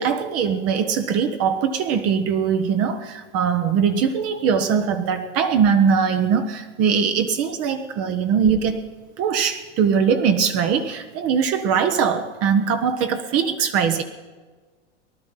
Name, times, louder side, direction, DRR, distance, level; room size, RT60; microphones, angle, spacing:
voice 1, 0.0-8.8 9.2-14.0, right 7 dB, 40° right, 7 dB, 1.2 m, -21 dB
19.0 x 11.5 x 5.7 m, 1.4 s
hypercardioid pair, 105°, 36 cm